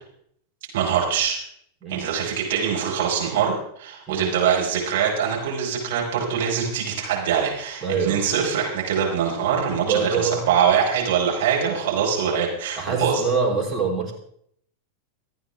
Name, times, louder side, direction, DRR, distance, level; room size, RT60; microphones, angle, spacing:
voice 1, 0.7-1.4 1.9-13.2, right 7 dB, 55° right, -2 dB, 4.7 m, -23 dB
voice 2, 7.8-8.3 9.8-10.4 12.8-14.1, right 5 dB, 10° right, -1 dB, 3.5 m, -24 dB
25.5 x 9.1 x 3.5 m, 0.67 s
figure-of-eight pair, 90°, 0 cm